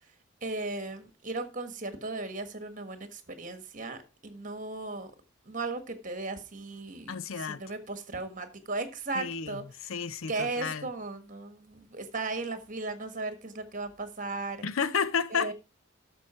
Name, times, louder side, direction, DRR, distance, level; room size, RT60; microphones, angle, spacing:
voice 1, 0.4-5.1 5.4-9.6 10.3-14.6 15.3-15.5, right 3 dB, 35° right, 1.6 m, -36 dB
voice 2, 7.1-7.6 9.1-10.9 14.6-15.5, left 6 dB, 70° left, 0.6 m, -32 dB
12.0 x 6.6 x 4.3 m
head